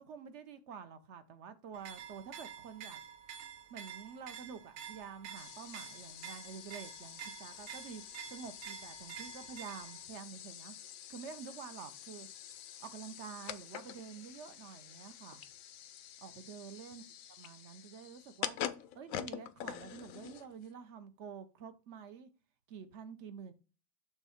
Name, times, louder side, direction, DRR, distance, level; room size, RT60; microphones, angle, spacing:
voice 1, 0.0-3.0 3.7-8.0 8.3-10.7 11.1-12.3 12.8-15.4 16.2-17.0 17.4-18.6 18.9-22.3 22.7-23.5, right 6 dB, 60° right, 0.7 m, -48 dB
sound 1, 1.7-10.0, right 8 dB, 80° right, 1.4 m, -49 dB
sound 2, 5.4-20.7, left 10 dB, 70° left, 0.8 m, -46 dB
7.1 x 3.1 x 5.7 m
omnidirectional pair, 2.0 m